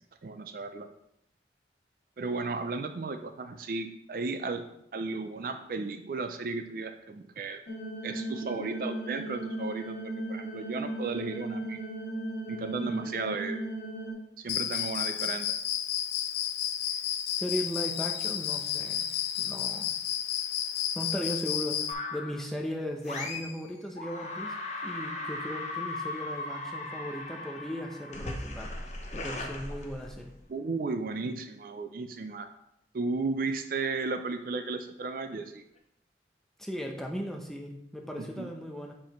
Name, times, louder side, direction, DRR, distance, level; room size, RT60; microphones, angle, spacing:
voice 1, 0.2-0.9 2.2-4.6 4.9-7.6 8.0-11.8 12.5-13.6 14.4-15.5 30.5-32.5 32.9-35.6 38.4-38.5, right 3 dB, 50° right, 8 dB, 0.4 m, -34 dB
sound 1, 7.7-14.1, right 1 dB, 90° left, 1.7 m, -36 dB
Cricket, 14.5-21.9, left 10 dB, 70° left, 0.4 m, -31 dB
voice 2, 17.3-19.1 19.4-19.9 20.9-24.6 24.8-28.7 29.1-30.3 36.6-38.9, equal, ahead, 0 dB, 0.6 m, -37 dB
sound 2, 21.9-22.5 23.0-23.7 24.0-30.4, left 2 dB, 40° left, 0.8 m, -38 dB
7.1 x 4.8 x 3.0 m, 0.79 s
head